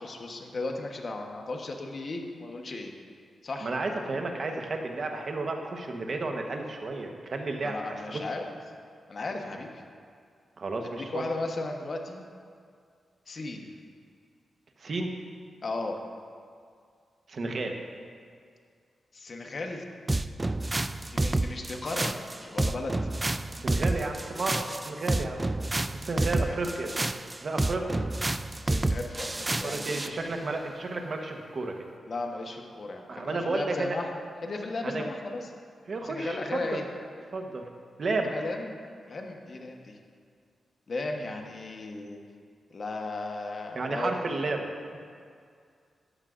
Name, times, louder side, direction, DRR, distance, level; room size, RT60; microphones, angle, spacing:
voice 1, 0.0-2.9 3.4-3.7 7.6-8.4 9.1-9.8 11.1-12.2 13.3-13.7 15.6-16.0 19.1-19.8 21.1-22.9 26.2-26.6 28.6-30.2 32.1-34.1 34.4-35.5 36.0-36.8 38.2-38.8 39.1-40.0 40.9-42.2 42.7-44.1, left 2 dB, 50° left, 2 dB, 1.0 m, -35 dB
voice 2, 3.6-7.7 10.6-11.2 14.8-15.1 17.3-17.8 23.6-25.5 26.0-26.9 27.4-28.0 29.6-31.7 33.1-34.0 34.8-35.0 35.9-36.8 37.3-37.6 38.0-38.3 43.7-44.7, right 3 dB, 55° right, 3 dB, 1.0 m, -32 dB
sound 1, 20.1-30.2, right 2 dB, 20° right, 0.3 m, -29 dB
13.0 x 9.1 x 2.5 m, 2.2 s
cardioid pair, 70°, 0 cm